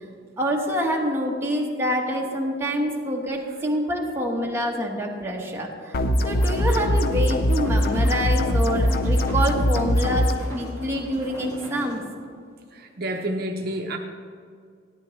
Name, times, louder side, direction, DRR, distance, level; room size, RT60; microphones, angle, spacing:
voice 1, 0.4-5.9 6.2-10.3 10.5-12.0, equal, 15° right, -1 dB, 1.1 m, -26 dB
sound 1, 5.9-10.3, left 1 dB, 50° left, 0.6 m, -21 dB
sound 2, 6.2-12.0, equal, 15° left, 2.3 m, -39 dB
voice 2, 12.7-14.0, right 1 dB, 50° right, 3 dB, 0.7 m, -29 dB
14.0 x 9.9 x 3.2 m, 2.1 s
head